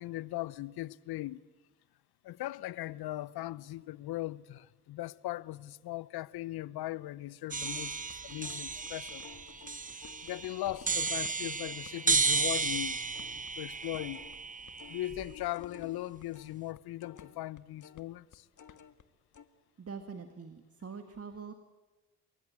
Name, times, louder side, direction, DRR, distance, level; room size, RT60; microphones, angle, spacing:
voice 1, 0.0-1.4 2.2-9.2 10.2-13.0 13.6-14.2 14.9-18.5, left 15 dB, 65° left, 0.9 m, -39 dB
sound 1, 7.5-15.4, right 4 dB, 20° right, 1.0 m, -33 dB
sound 2, 7.6-15.0 15.3-19.0 19.3-19.5, left 7 dB, 45° left, 1.7 m, -54 dB
voice 2, 19.8-21.5, right 5 dB, 35° right, 2.0 m, -44 dB
23.5 x 22.5 x 9.6 m
hypercardioid pair, 50°, 41 cm